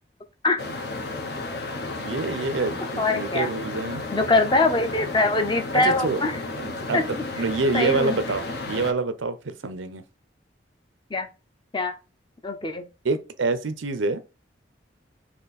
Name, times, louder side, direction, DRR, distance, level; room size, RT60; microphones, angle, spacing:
sound 1, 0.6-8.9, left 2 dB, 55° left, 0.9 m, -33 dB
voice 1, 1.9-4.0 5.7-6.2 6.6-10.0 13.0-14.2, right 3 dB, 90° right, 0.7 m, -27 dB
voice 2, 3.0-3.5 4.1-6.4 6.9-7.0 7.7-8.2 11.1-11.3 11.7-12.0 12.4-12.8, left 2 dB, 25° left, 0.7 m, -22 dB
4.3 x 3.0 x 4.1 m
head